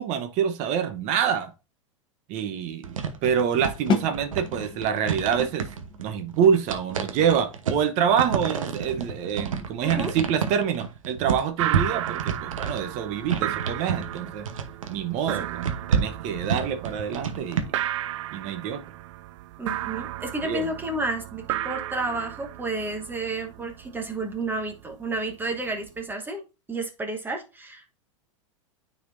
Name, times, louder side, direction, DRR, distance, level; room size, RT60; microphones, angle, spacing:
voice 1, 0.0-1.5 2.3-5.7 6.0-14.5 14.9-17.7 18.3-18.8 20.4-20.7, right 8 dB, 45° right, 1.0 m, -26 dB
sound 1, 2.8-17.6, right 6 dB, 85° right, 1.0 m, -30 dB
sound 2, 3.9-9.6, left 5 dB, 30° left, 0.9 m, -34 dB
voice 2, 9.8-10.1 19.6-26.4 26.7-27.9, right 2 dB, 10° right, 1.3 m, -31 dB
sound 3, 11.6-26.1, right 13 dB, 70° right, 0.5 m, -34 dB
9.4 x 4.3 x 2.6 m
hypercardioid pair, 105°, 17 cm